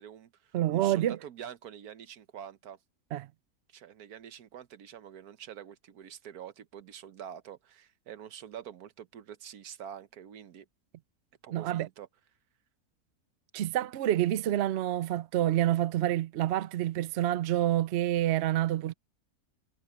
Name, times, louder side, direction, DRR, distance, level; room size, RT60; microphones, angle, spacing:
voice 1, 0.0-2.8 3.7-10.7 11.4-12.1, right 9 dB, 85° right, 1.5 m, -46 dB
voice 2, 0.5-1.2 3.1-3.3 11.5-11.9 13.5-18.9, right 13 dB, 65° right, 0.7 m, -28 dB
omnidirectional pair, 1.6 m